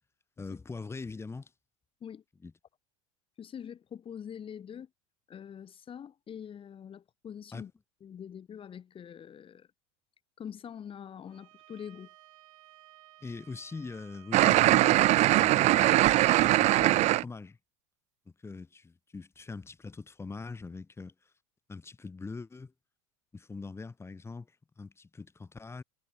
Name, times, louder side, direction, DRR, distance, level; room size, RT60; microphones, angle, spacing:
voice 1, 0.4-1.5 2.4-2.5 7.5-7.6 13.2-15.0 15.3-16.0 16.3-17.6 18.4-21.3 21.7-22.7 23.3-25.8, left 4 dB, 15° left, 2.5 m, -42 dB
voice 2, 3.4-4.9 5.3-7.7 8.0-9.7 10.4-12.1, left 8 dB, 30° left, 5.7 m, -44 dB
Bowed string instrument, 11.3-16.6, right 18 dB, 75° right, 6.9 m, -57 dB
sound 1, 14.3-17.2, right 16 dB, 40° right, 0.5 m, -22 dB
hypercardioid pair, 100°, 17 cm